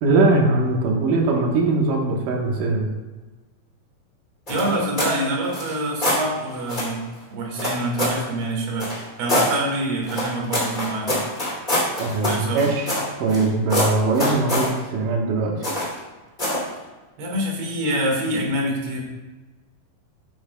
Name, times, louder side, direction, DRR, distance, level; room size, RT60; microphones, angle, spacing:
voice 1, 0.0-2.9 12.0-12.9 13.2-15.6, right 3 dB, 65° right, 1 dB, 2.6 m, -21 dB
sound 1, 4.5-5.2 5.5-6.2 6.7-6.9 7.6-8.2 8.8-9.5 10.1-13.4 13.7-14.7 15.6-16.0 16.4-16.7, left 1 dB, 15° left, 2.3 m, -24 dB
voice 2, 4.5-7.0 7.3-8.9 9.2-11.2 12.3-12.6 17.2-19.0, right 1 dB, 90° right, -1 dB, 3.8 m, -25 dB
13.0 x 8.8 x 2.3 m, 1.2 s
omnidirectional pair, 4.3 m